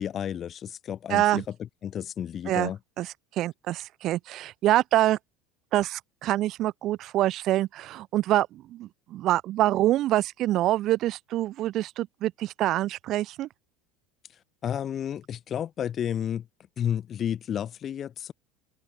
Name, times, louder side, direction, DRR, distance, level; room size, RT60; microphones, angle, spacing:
voice 1, 0.0-1.4 1.8-2.8 14.6-16.5 16.8-18.3, left 9 dB, 35° left, 1.1 m, -31 dB
voice 2, 1.1-1.4 2.5-2.7 3.0-5.2 5.7-13.5, right 14 dB, 45° right, 0.5 m, -26 dB
open air
figure-of-eight pair, 70°, 0 cm